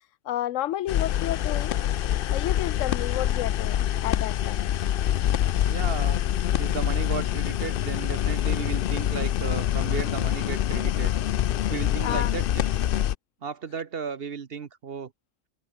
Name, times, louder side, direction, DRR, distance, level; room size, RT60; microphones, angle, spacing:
voice 1, 0.2-1.7 2.3-4.7 12.0-12.3, left 13 dB, 90° left, 1.0 m, -31 dB
sound 1, 0.9-13.1, left 11 dB, 60° left, 0.6 m, -25 dB
voice 2, 5.7-6.2 6.6-11.1 11.7-12.7 13.4-15.1, right 6 dB, 55° right, 1.1 m, -34 dB
omnidirectional pair, 1.3 m